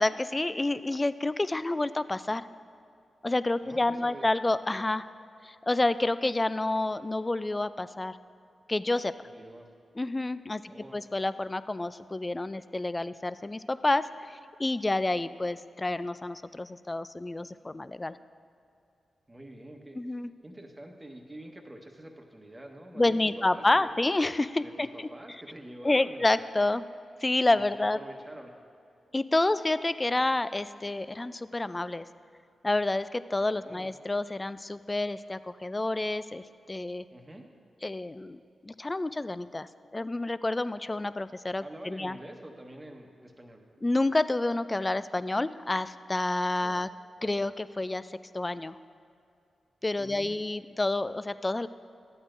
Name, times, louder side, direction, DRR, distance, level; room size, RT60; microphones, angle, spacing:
voice 1, 0.0-2.5 3.2-5.1 5.4-8.2 8.7-9.1 10.0-10.6 10.9-18.2 20.0-20.3 22.9-25.1 25.8-26.8 27.2-28.0 29.1-32.0 32.6-37.0 37.8-42.2 43.8-46.9 47.2-48.8 49.8-51.7, left 2 dB, 30° left, 14 dB, 0.3 m, -29 dB
voice 2, 3.6-4.2 9.2-9.7 10.7-11.0 19.3-20.0 20.4-23.2 23.5-23.9 24.6-26.3 27.5-28.5 33.6-33.9 37.1-37.5 41.6-43.6 46.6-46.8 50.0-50.4, right 1 dB, 20° right, 3 dB, 1.2 m, -46 dB
12.5 x 8.7 x 2.6 m, 2.6 s
supercardioid pair, 45°, 0 cm